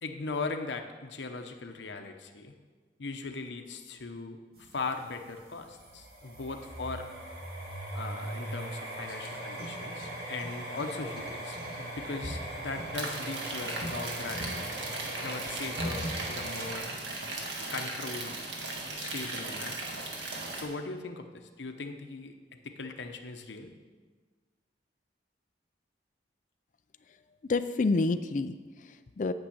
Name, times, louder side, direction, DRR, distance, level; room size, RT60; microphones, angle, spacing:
voice 1, 0.0-2.5 3.0-7.1 7.9-14.6 15.2-16.9 17.7-18.3 18.6-18.7 19.0-19.8 20.6-22.3 22.6-23.7, left 3 dB, 85° left, 5 dB, 0.8 m, -39 dB
sound 1, 4.6-16.8, right 1 dB, 60° right, 2.1 m, -39 dB
sound 2, 12.9-20.6, right 2 dB, 90° right, 1.8 m, -37 dB
voice 2, 27.4-29.3, left 3 dB, 45° left, 9 dB, 0.4 m, -29 dB
9.0 x 6.2 x 8.4 m, 1.4 s
head